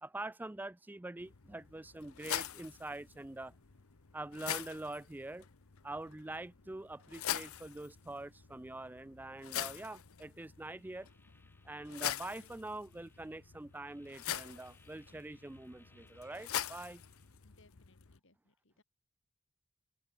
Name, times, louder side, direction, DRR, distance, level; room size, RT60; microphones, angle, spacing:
voice 1, 0.0-3.5 4.1-5.4 5.8-11.1 11.6-17.0, right 2 dB, 10° right, 0.3 m, -45 dB
sound 1, 1.2-18.2, left 10 dB, 85° left, 1.0 m, -44 dB
sound 2, 10.6-17.3, left 2 dB, 10° left, 7.9 m, -69 dB
voice 2, 12.4-12.8 17.4-18.8, left 2 dB, 60° left, 4.3 m, -69 dB
head